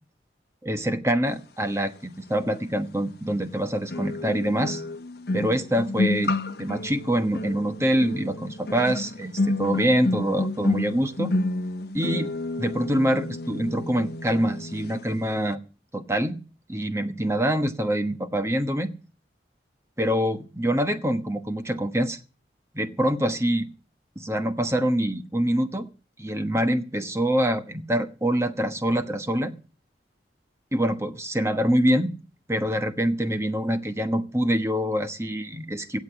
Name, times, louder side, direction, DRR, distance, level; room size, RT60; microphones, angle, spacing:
voice 1, 0.6-4.8 5.3-6.3 6.6-11.3 11.9-12.3 12.6-15.6 15.9-16.4 16.7-18.9 20.0-22.2 22.7-23.7 24.2-25.9 26.2-29.5 30.7-32.1 32.5-36.0, equal, 15° right, 1.1 m, -25 dB
sound 1, 2.5-2.6 3.9-15.0 15.3-15.5, left 2 dB, 60° left, 0.9 m, -30 dB
17.0 x 8.2 x 7.1 m
head